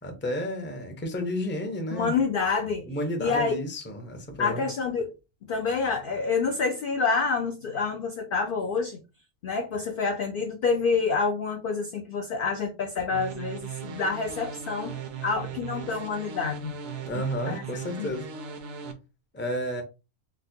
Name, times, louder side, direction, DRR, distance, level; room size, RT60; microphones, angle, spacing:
voice 1, 0.0-2.2 2.9-4.6 17.0-18.3 19.3-19.8, left 1 dB, 15° left, 0.4 m, -32 dB
voice 2, 1.9-2.9 3.2-3.6 4.4-5.1 5.5-9.0 9.4-14.9 15.2-16.7 17.2-17.6 18.0-18.1, left 4 dB, 65° left, 0.5 m, -27 dB
sound 1, 13.1-18.9, right 7 dB, 65° right, 0.9 m, -38 dB
4.1 x 2.1 x 2.6 m
omnidirectional pair, 1.4 m